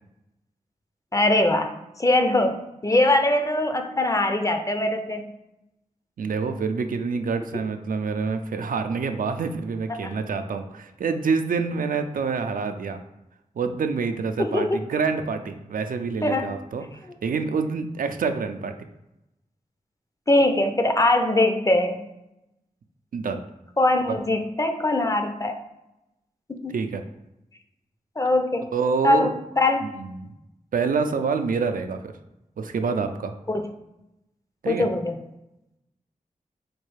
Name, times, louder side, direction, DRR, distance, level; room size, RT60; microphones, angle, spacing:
voice 1, 1.1-1.7 2.0-5.2 9.9-10.1 14.4-14.8 16.2-16.6 20.3-22.0 23.8-25.6 26.5-26.8 28.2-28.6 29.0-29.9 33.5-33.6 34.7-35.2, left 1 dB, 25° left, 5 dB, 0.5 m, -22 dB
voice 2, 6.2-13.0 13.6-16.9 17.2-18.7 23.1-23.4 26.7-27.0 28.7-29.3 30.0-30.3 30.7-32.1 32.6-33.3 34.6-34.9, right 5 dB, 75° right, 7 dB, 0.4 m, -27 dB
4.4 x 2.3 x 3.2 m, 0.90 s
cardioid pair, 45°, 14 cm